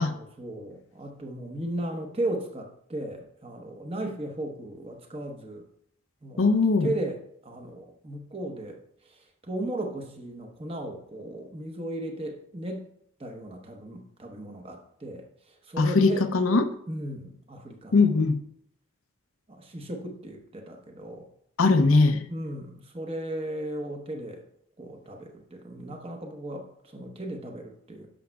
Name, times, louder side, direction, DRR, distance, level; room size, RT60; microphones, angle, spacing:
voice 1, 0.0-5.6 6.2-6.5 6.8-12.9 13.2-16.3 16.9-18.2 19.5-21.2 22.3-24.4 24.8-28.1, right 1 dB, 30° right, 3 dB, 1.0 m, -36 dB
voice 2, 6.4-6.9 15.8-16.6 17.9-18.4 21.6-22.2, left 3 dB, 90° left, 8 dB, 0.7 m, -20 dB
10.0 x 6.3 x 2.3 m, 0.69 s
head